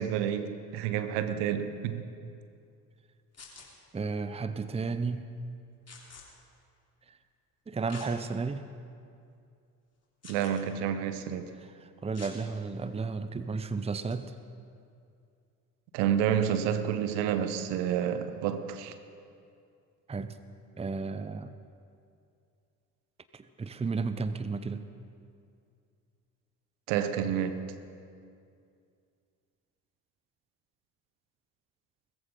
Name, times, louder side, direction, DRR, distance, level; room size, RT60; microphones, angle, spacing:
voice 1, 0.0-2.1 10.3-11.5 15.9-19.0 26.9-27.6, right 9 dB, 70° right, 10 dB, 1.0 m, -29 dB
sound 1, 3.3-3.7 5.9-6.2 7.9-8.1 8.7-8.8 10.2-10.6 12.1-12.4 13.9-14.1, left 4 dB, 35° left, 3.2 m, -47 dB
voice 2, 3.9-5.3 7.1-7.2 7.7-8.6 11.8-14.3 20.1-20.4 20.8-21.5 23.3-24.9, right 4 dB, 15° right, 12 dB, 0.7 m, -33 dB
20.5 x 14.5 x 3.9 m, 2.4 s
hypercardioid pair, 50°, 43 cm